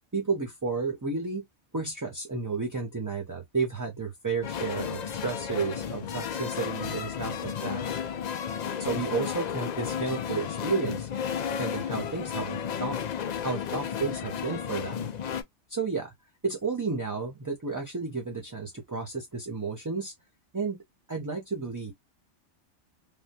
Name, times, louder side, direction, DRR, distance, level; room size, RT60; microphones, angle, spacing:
voice 1, 0.1-1.4 1.7-7.8 8.8-11.1 11.6-13.0 13.4-15.1 15.7-16.1 16.4-20.1 20.5-20.8 21.1-21.9, right 4 dB, 25° right, 0.5 m, -32 dB
sound 1, 4.4-15.4, left 8 dB, 60° left, 0.4 m, -33 dB
3.3 x 2.2 x 2.7 m
omnidirectional pair, 1.2 m